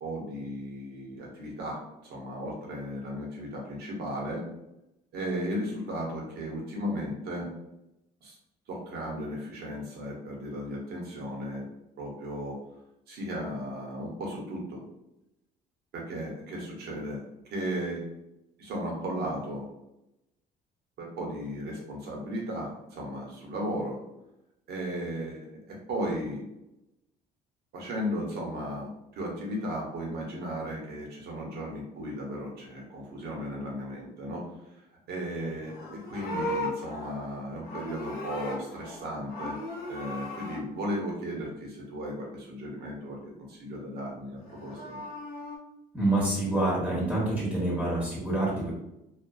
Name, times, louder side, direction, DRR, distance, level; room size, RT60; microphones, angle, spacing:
voice 1, 0.0-4.5 5.1-7.5 8.2-8.4 8.7-11.7 12.0-12.6 13.1-14.8 15.9-17.2 17.5-18.0 18.6-19.7 21.0-24.0 24.7-26.4 27.7-34.4 34.7-39.6 39.9-43.2 43.5-45.0, equal, 70° right, -2 dB, 1.0 m, -35 dB
Livestock farm animals working animals, 35.6-39.0 39.3-40.6 44.4-45.6, left 1 dB, 65° left, 0.8 m, -37 dB
voice 2, 45.9-48.7, right 2 dB, 10° right, -7 dB, 1.2 m, -27 dB
2.6 x 2.4 x 2.3 m, 0.87 s
cardioid pair, 110°, 17 cm